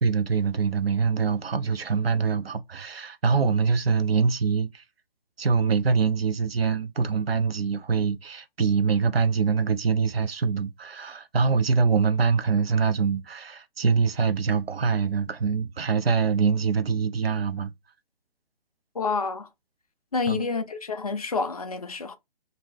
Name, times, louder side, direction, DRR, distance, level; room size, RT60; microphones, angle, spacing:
voice 1, 0.0-4.8 5.4-17.7 20.3-20.5, right 5 dB, 80° right, 0.5 m, -24 dB
voice 2, 18.9-19.5 20.1-22.2, left 4 dB, 40° left, 0.4 m, -28 dB
2.6 x 2.1 x 3.2 m
figure-of-eight pair, 140°, 30 cm